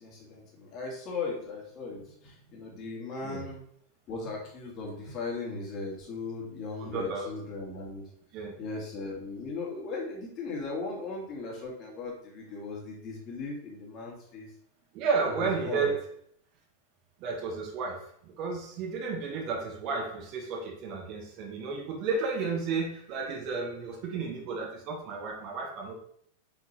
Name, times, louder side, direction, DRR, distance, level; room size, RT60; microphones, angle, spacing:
voice 1, 0.0-3.7 4.1-8.1 8.6-14.5 15.2-15.9, left 3 dB, 35° left, -2 dB, 2.3 m, -38 dB
voice 2, 6.8-7.3 8.3-8.5 14.9-16.0 17.2-25.9, right 4 dB, 40° right, 1 dB, 1.5 m, -32 dB
6.0 x 5.9 x 3.2 m, 0.67 s
figure-of-eight pair, 90°, 0 cm